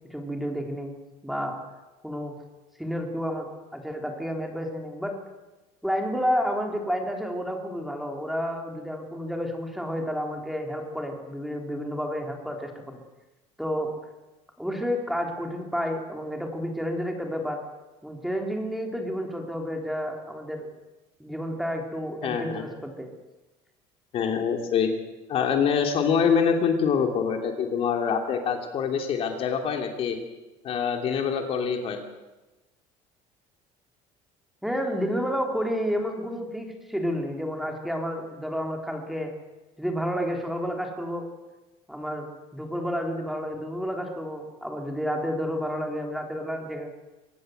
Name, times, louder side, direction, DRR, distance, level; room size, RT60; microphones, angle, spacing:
voice 1, 0.1-0.9 1.2-1.6 2.0-2.3 2.8-3.5 3.7-5.2 5.8-13.0 13.6-13.9 14.6-17.6 18.0-20.6 21.2-23.1 34.6-39.3 39.8-41.3 41.9-42.3 42.5-46.9, equal, ahead, 2 dB, 3.6 m, -30 dB
voice 2, 22.2-22.6 24.1-24.9 25.3-30.2 30.6-32.0, left 6 dB, 45° left, 4 dB, 3.0 m, -25 dB
24.5 x 19.0 x 8.0 m, 1.1 s
cardioid pair, 145°, 13 cm